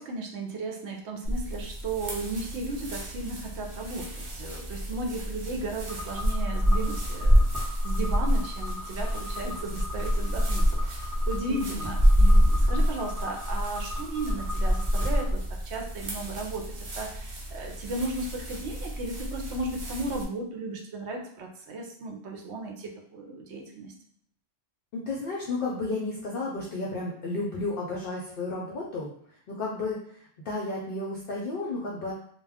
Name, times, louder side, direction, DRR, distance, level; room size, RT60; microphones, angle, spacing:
voice 1, 0.0-15.4 15.7-23.9, right 2 dB, 70° right, 1 dB, 0.8 m, -35 dB
sound 1, 1.2-20.2, equal, 45° right, 0.4 m, -27 dB
sound 2, 5.9-15.2, left 2 dB, 15° right, 0.9 m, -40 dB
voice 2, 11.5-11.9 24.9-29.1 29.5-32.1, left 2 dB, 60° left, -3 dB, 0.6 m, -32 dB
2.3 x 2.2 x 3.4 m, 0.65 s
omnidirectional pair, 1.2 m